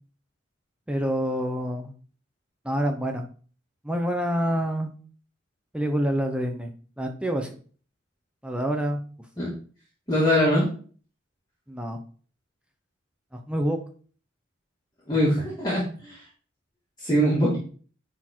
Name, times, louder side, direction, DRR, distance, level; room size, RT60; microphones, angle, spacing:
voice 1, 0.9-1.9 2.6-3.3 3.8-4.9 5.7-6.7 7.0-7.5 8.4-9.0 11.7-12.0 13.5-13.8, equal, 5° right, 3 dB, 0.8 m, -27 dB
voice 2, 10.1-10.7 15.1-16.1 17.0-17.6, equal, 20° left, -7 dB, 2.4 m, -22 dB
9.9 x 4.4 x 4.6 m, 0.42 s
head